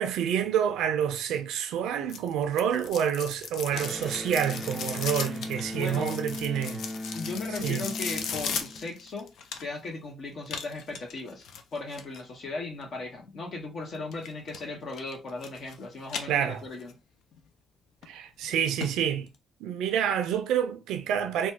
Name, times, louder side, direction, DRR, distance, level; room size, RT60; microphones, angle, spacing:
voice 1, 0.0-6.8 7.6-7.8 16.3-16.6 18.1-19.3 19.6-21.5, right 9 dB, 90° right, 0.4 m, -28 dB
sound 1, 2.1-9.9 10.5-12.2 14.1-14.6 14.9-15.8 16.0-16.9 17.3-17.4 18.0-18.1 18.4-18.5 18.8-18.9 19.3-19.4, left 6 dB, 75° left, 0.5 m, -37 dB
Electric guitar, 3.7-9.2, left 1 dB, 5° right, 0.4 m, -38 dB
voice 2, 5.7-6.1 7.1-9.3 9.6-11.4 11.7-16.9, left 3 dB, 55° left, 0.9 m, -37 dB
3.0 x 2.3 x 2.7 m
cardioid pair, 90°, 0 cm